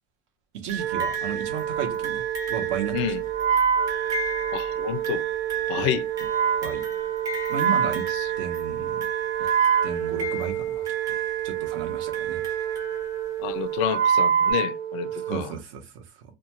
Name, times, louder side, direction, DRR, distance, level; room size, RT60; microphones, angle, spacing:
voice 1, 0.6-3.0 5.7-5.9 6.6-6.8 7.5-8.0 8.4-9.0 9.8-10.8 11.4-12.4 15.1-16.2, right 7 dB, 65° right, 0.8 m, -34 dB
sound 1, 0.7-13.5 14.5-14.6, right 5 dB, 20° right, 0.7 m, -35 dB
Wind instrument woodwind instrument, 0.8-15.5, right 8 dB, 90° right, 0.4 m, -27 dB
voice 2, 4.5-5.2 5.7-6.1 8.1-8.3 13.4-15.5, left 9 dB, 60° left, 0.4 m, -29 dB
2.4 x 2.2 x 2.9 m
cardioid pair, 175°, 17 cm